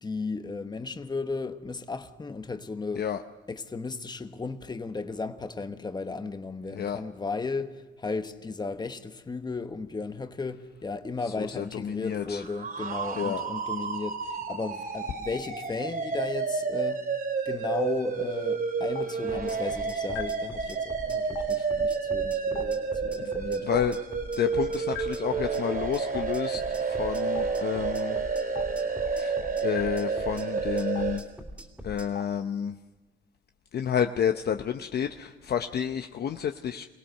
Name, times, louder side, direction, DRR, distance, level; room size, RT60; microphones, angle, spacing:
voice 1, 0.0-3.1 3.5-17.0 17.4-23.7, left 4 dB, 20° left, 1.1 m, -35 dB
voice 2, 11.4-12.4 13.2-13.4 21.6-21.7 23.2-23.3 23.6-24.0 24.4-28.2 29.2-29.3 29.6-31.2 31.8-32.7 33.7-36.8, left 8 dB, 55° left, 0.8 m, -30 dB
sound 1, 12.1-31.2, right 5 dB, 50° right, 3.5 m, -30 dB
Stream, 17.7-17.8 18.9-19.0 20.1-20.2 21.3-21.4 22.5-22.6 23.7-23.8 24.9-25.0 26.1-26.2 27.3-27.4 28.5-28.6 29.7-29.8 30.9-31.0 32.1-32.2, left 15 dB, 90° left, 1.0 m, -35 dB
sound 2, 19.3-32.1, equal, 5° right, 2.8 m, -42 dB
24.5 x 17.0 x 6.5 m
cardioid pair, 90°, 20 cm